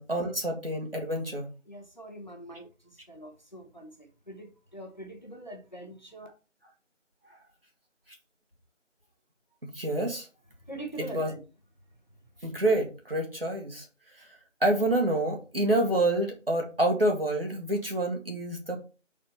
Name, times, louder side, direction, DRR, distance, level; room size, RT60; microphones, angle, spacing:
voice 1, 0.0-1.5 9.6-10.3 11.0-11.3 12.4-13.9 14.6-18.8, right 1 dB, 50° right, 2.0 m, -27 dB
voice 2, 1.7-6.3 10.7-11.4, right 1 dB, 35° left, 1.1 m, -43 dB
4.9 x 4.2 x 5.6 m
figure-of-eight pair, 180°, 38 cm